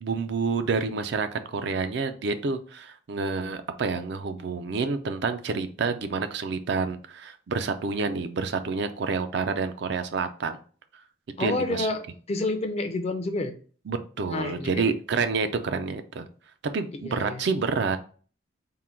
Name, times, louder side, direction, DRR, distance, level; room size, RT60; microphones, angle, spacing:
voice 1, 0.0-10.6 11.4-11.9 13.9-16.2 16.7-18.0, right 4 dB, 55° right, 9 dB, 0.4 m, -28 dB
voice 2, 11.4-13.5 14.3-14.9 16.9-17.4, left 2 dB, 30° left, 6 dB, 0.4 m, -29 dB
3.7 x 2.2 x 4.3 m, 0.41 s
head